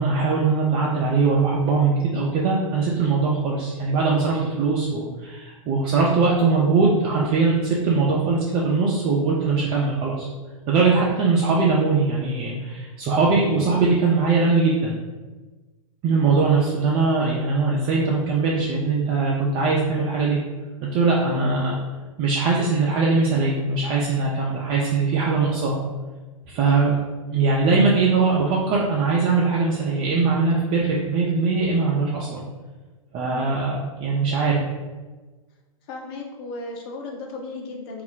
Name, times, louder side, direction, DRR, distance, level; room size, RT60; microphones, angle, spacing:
voice 1, 0.0-10.3 10.7-14.9 16.0-20.4 20.8-21.8 22.2-25.8 26.5-27.0 27.3-32.4 33.1-34.6, right 4 dB, 30° right, -4 dB, 0.4 m, -21 dB
voice 2, 21.3-21.7 33.2-33.6 35.9-38.0, left 3 dB, 45° left, 0 dB, 0.7 m, -35 dB
2.4 x 2.0 x 3.8 m, 1.3 s
figure-of-eight pair, 105°, 19 cm